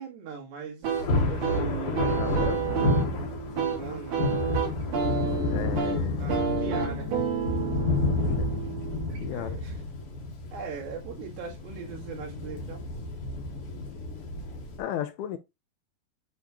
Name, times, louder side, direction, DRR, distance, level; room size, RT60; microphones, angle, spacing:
voice 1, 0.0-2.3 3.7-4.3 5.6-7.1 9.3-9.7 10.5-12.8, right 6 dB, 80° right, 4.3 m, -40 dB
sound 1, 0.8-9.4, right 6 dB, 60° right, 4.0 m, -30 dB
Thunder, 0.9-14.8, left 2 dB, 55° left, 1.7 m, -30 dB
voice 2, 2.2-2.7 5.5-6.4 8.2-8.6 9.2-9.6 14.8-15.4, left 11 dB, 80° left, 2.4 m, -34 dB
9.5 x 3.7 x 3.0 m
omnidirectional pair, 4.8 m